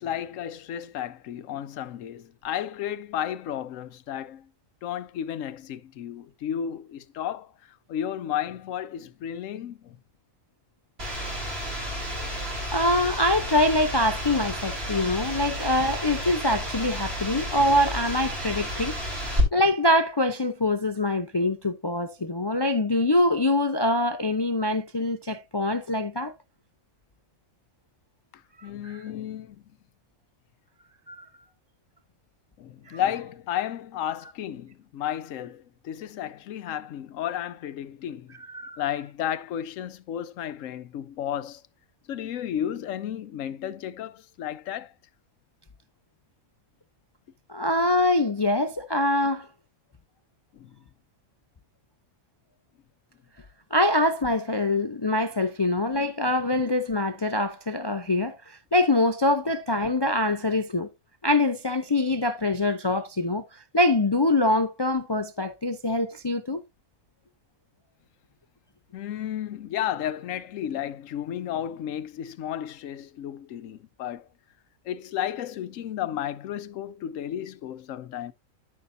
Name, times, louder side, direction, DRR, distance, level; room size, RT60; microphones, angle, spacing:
voice 1, 0.0-4.5 4.8-10.0 28.3-29.6 32.6-38.4 38.8-41.6 42.1-44.9 50.5-50.8 68.9-74.3 74.8-78.3, left 10 dB, 75° left, 1.0 m, -33 dB
sound 1, 11.0-19.4, equal, 50° right, 4.2 m, -31 dB
voice 2, 12.7-19.0 19.5-26.3 28.8-29.0 31.1-31.2 32.9-33.0 38.5-38.8 47.5-49.5 53.7-60.9 61.2-66.6, left 1 dB, 35° left, 0.4 m, -24 dB
13.0 x 5.7 x 2.6 m
omnidirectional pair, 1.4 m